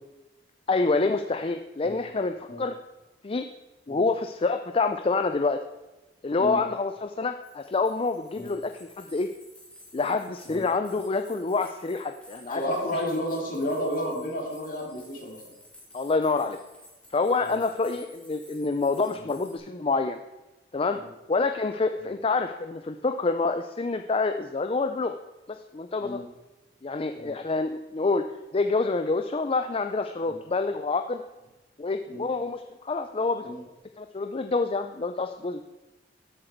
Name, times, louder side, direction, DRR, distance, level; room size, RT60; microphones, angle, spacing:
voice 1, 0.7-2.8 3.2-3.5 3.9-5.6 6.2-9.3 9.9-12.6 15.9-16.6 17.1-20.2 20.7-21.0 21.3-25.2 25.5-26.2 26.8-28.2 28.5-31.2 31.8-33.4 34.0-35.6, left 3 dB, 30° left, 7 dB, 0.5 m, -27 dB
sound 1, 7.4-19.6, left 1 dB, 5° left, 2.3 m, -53 dB
voice 2, 12.5-15.5 17.4-17.6 19.2-19.3 20.9-21.1 26.0-26.2 27.1-27.3 30.3-30.4 32.1-32.2 33.4-33.6, equal, 50° left, -1 dB, 3.1 m, -32 dB
13.0 x 7.9 x 4.5 m, 1.1 s
head